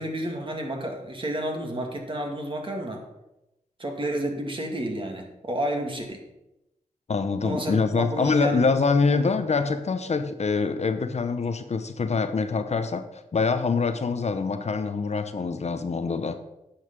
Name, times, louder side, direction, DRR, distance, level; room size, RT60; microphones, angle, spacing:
voice 1, 0.0-3.0 3.8-6.2 7.4-8.7, right 1 dB, 40° right, 2 dB, 2.2 m, -31 dB
voice 2, 7.1-16.4, left 4 dB, 55° left, 9 dB, 0.8 m, -25 dB
9.5 x 5.8 x 6.0 m, 0.90 s
cardioid pair, 65°, 14 cm